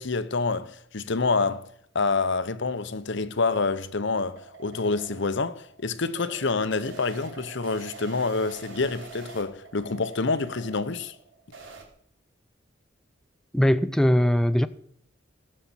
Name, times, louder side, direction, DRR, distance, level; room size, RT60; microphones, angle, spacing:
voice 1, 0.0-11.1, left 4 dB, 65° left, 0.9 m, -27 dB
sound 1, 3.2-11.8, right 5 dB, 70° right, 3.7 m, -45 dB
voice 2, 13.5-14.7, equal, 5° left, 0.5 m, -20 dB
17.5 x 7.5 x 7.2 m
head